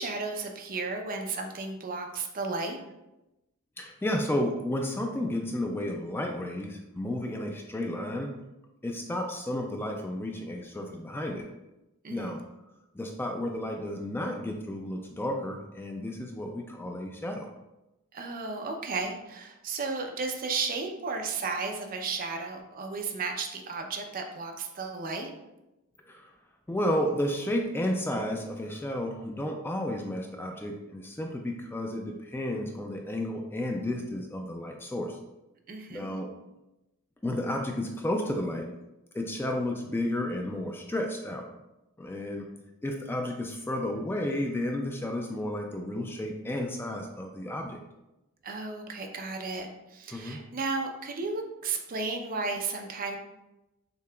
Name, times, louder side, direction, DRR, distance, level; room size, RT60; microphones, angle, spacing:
voice 1, 0.0-2.8 12.0-12.3 18.1-25.3 35.7-36.1 48.4-53.2, right 4 dB, 40° right, 3 dB, 0.5 m, -34 dB
voice 2, 3.8-8.3 8.8-11.4 12.1-12.4 12.9-17.5 26.1-26.3 26.7-35.2 35.9-36.3 37.2-38.7 39.1-41.4 42.0-42.5 42.8-47.8 50.1-50.4, left 1 dB, 10° left, 2 dB, 0.3 m, -32 dB
6.7 x 2.8 x 2.3 m, 0.96 s
head